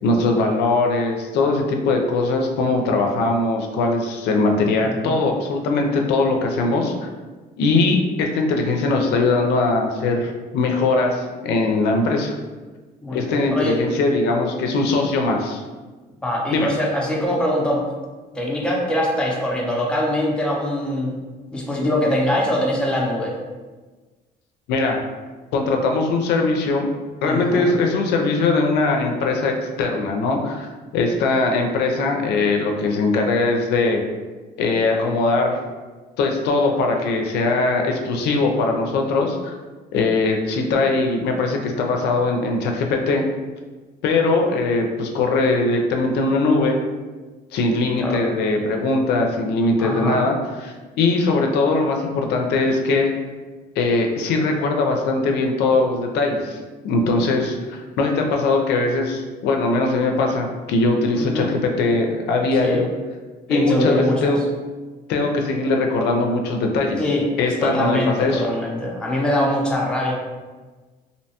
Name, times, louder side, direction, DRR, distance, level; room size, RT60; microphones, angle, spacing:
voice 1, 0.0-6.9 7.6-12.3 13.1-15.6 16.5-16.7 24.7-25.1 25.5-26.9 27.2-34.0 34.6-35.6 36.2-39.5 39.9-43.2 44.0-46.8 47.5-53.1 53.8-56.6 56.8-62.9 63.5-64.4 65.1-67.0 67.4-68.4, left 3 dB, 80° left, 2 dB, 0.4 m, -20 dB
voice 2, 4.8-5.2 13.0-13.8 16.2-17.9 18.3-21.1 21.5-23.4 27.2-27.7 48.0-48.2 49.8-50.2 61.1-61.5 62.6-62.8 63.5-64.3 67.0-67.3 67.6-70.1, left 1 dB, 5° left, -2 dB, 0.5 m, -23 dB
2.7 x 2.1 x 2.8 m, 1.3 s
cardioid pair, 110°, 17 cm